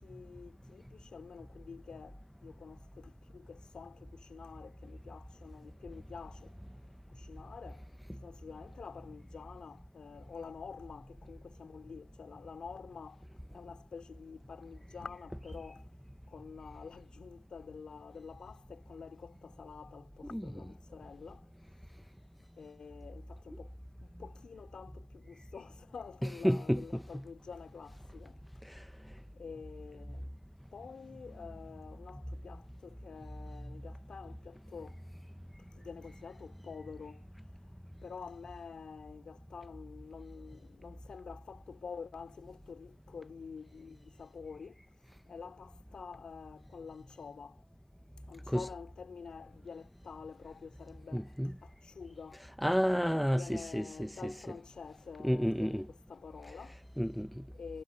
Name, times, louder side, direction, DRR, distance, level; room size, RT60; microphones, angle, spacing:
voice 1, 0.0-6.5 7.1-7.8 8.2-13.2 13.5-15.8 16.3-21.4 22.6-23.7 24.0-28.4 29.4-30.3 30.7-35.0 35.6-37.2 38.0-44.8 45.3-47.6 48.3-51.3 51.6-52.4 53.3-56.8 57.5-57.8, left 5 dB, 50° left, 2.4 m, -48 dB
voice 2, 26.2-27.2 48.5-48.7 51.1-51.5 52.6-54.3 55.2-55.9 57.0-57.4, equal, ahead, 0.4 m, -31 dB
wide cardioid pair, 180°, 2 cm